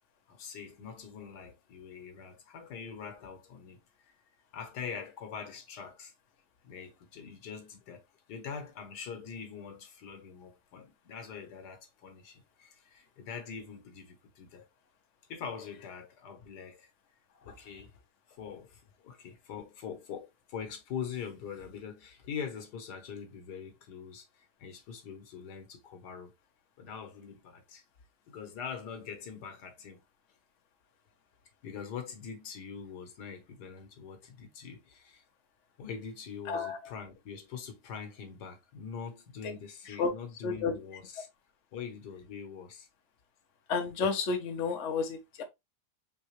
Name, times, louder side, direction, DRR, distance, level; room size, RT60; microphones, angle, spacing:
voice 1, 0.3-4.1 4.5-6.1 6.6-14.7 15.3-16.9 17.5-17.9 18.3-26.3 26.8-27.8 28.3-30.0 31.6-35.2 35.8-41.3 41.7-42.9, left 6 dB, 80° left, 1.6 m, -43 dB
voice 2, 36.5-36.9 39.4-39.5 39.9-40.1 40.4-40.7 43.7-45.4, left 5 dB, 50° left, 1.1 m, -31 dB
4.5 x 3.2 x 3.1 m
omnidirectional pair, 1.8 m